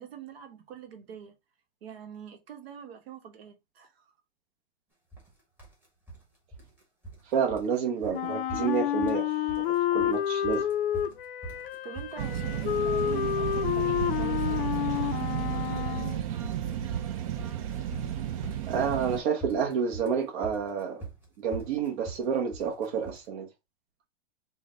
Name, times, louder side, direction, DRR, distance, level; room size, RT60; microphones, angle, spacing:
voice 1, 0.0-1.3 1.8-4.0 11.6-14.9, right 8 dB, 70° right, 1.1 m, -45 dB
sound 1, 5.1-5.3 5.6-6.2 6.5-7.2 7.5-7.8 8.0-8.2 8.5-9.2 9.5-10.2 10.4-23.3, right 3 dB, 5° right, 1.0 m, -42 dB
voice 2, 7.3-9.3 9.6-10.6 18.7-21.0 21.4-23.5, right 6 dB, 50° right, 0.8 m, -29 dB
Wind instrument woodwind instrument, 8.1-16.2, left 11 dB, 60° left, 0.4 m, -29 dB
sound 2, 12.2-19.2, right 9 dB, 35° right, 0.4 m, -32 dB
3.8 x 2.1 x 3.7 m
supercardioid pair, 165°, 31 cm